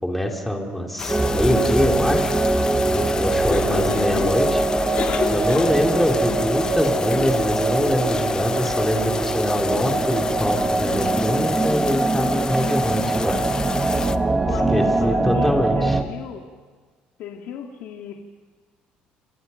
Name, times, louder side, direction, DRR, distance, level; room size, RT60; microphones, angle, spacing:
voice 1, 0.0-2.4 2.9-4.6 5.3-13.4 14.0-14.1 14.7-16.0, left 1 dB, 5° left, 1 dB, 3.6 m, -24 dB
sound 1, 1.0-14.2, left 5 dB, 25° left, 0.9 m, -30 dB
sound 2, 1.1-16.0, right 2 dB, 15° right, 1.9 m, -23 dB
Cough, 3.3-6.1, left 6 dB, 45° left, 2.9 m, -31 dB
voice 2, 3.6-4.3 14.5-16.5 17.2-18.2, left 8 dB, 70° left, 2 dB, 2.3 m, -34 dB
29.5 x 26.5 x 5.8 m, 1.5 s
cardioid pair, 130°, 3 cm